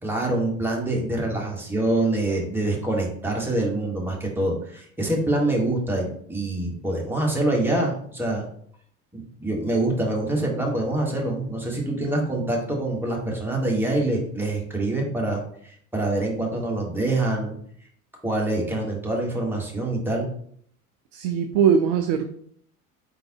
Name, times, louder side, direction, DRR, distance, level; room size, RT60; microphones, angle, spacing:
voice 1, 0.0-8.5 9.1-17.6 18.2-20.3, right 2 dB, 5° right, -1 dB, 1.3 m, -25 dB
voice 2, 21.1-22.2, right 7 dB, 40° right, 7 dB, 0.4 m, -20 dB
4.7 x 3.8 x 2.8 m, 0.63 s
figure-of-eight pair, 70°, 44 cm